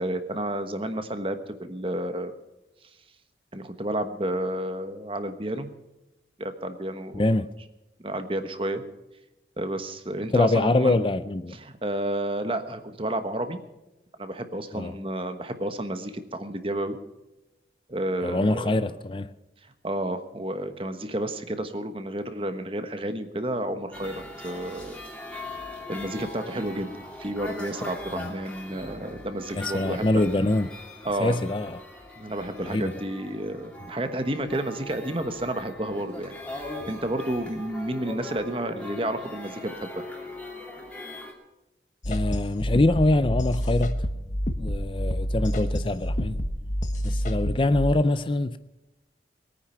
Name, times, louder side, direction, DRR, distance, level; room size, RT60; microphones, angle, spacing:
voice 1, 0.0-2.3 3.5-5.7 6.4-7.3 8.0-8.8 9.6-11.0 11.6-13.6 14.2-17.0 17.9-19.0 19.6-25.0 25.6-26.9 27.2-30.2 31.0-31.4 32.2-40.0, right 1 dB, 30° right, 1.2 m, -31 dB
voice 2, 7.1-7.5 10.3-11.6 14.7-14.9 18.2-19.3 28.2-28.3 29.5-30.7 31.2-31.7 32.7-32.9 42.1-44.0 44.6-46.4 47.0-48.6, left 2 dB, 30° left, 0.4 m, -24 dB
sound 1, 23.9-41.3, left 1 dB, 5° left, 2.7 m, -40 dB
sound 2, 42.0-47.9, equal, 45° left, 1.2 m, -28 dB
21.0 x 9.5 x 5.8 m
head